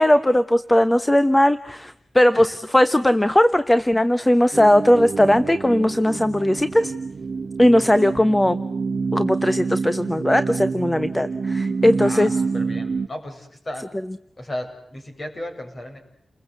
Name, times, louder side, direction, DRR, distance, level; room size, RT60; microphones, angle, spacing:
voice 1, 0.0-6.9 7.6-8.6 9.1-12.4, left 1 dB, 15° left, 12 dB, 1.0 m, -18 dB
sound 1, 4.5-13.1, right 4 dB, 55° right, 1.1 m, -27 dB
voice 2, 12.0-13.9 14.4-16.0, left 1 dB, 35° left, 5 dB, 7.4 m, -35 dB
30.0 x 21.5 x 8.2 m, 0.75 s
wide cardioid pair, 85°, 0 cm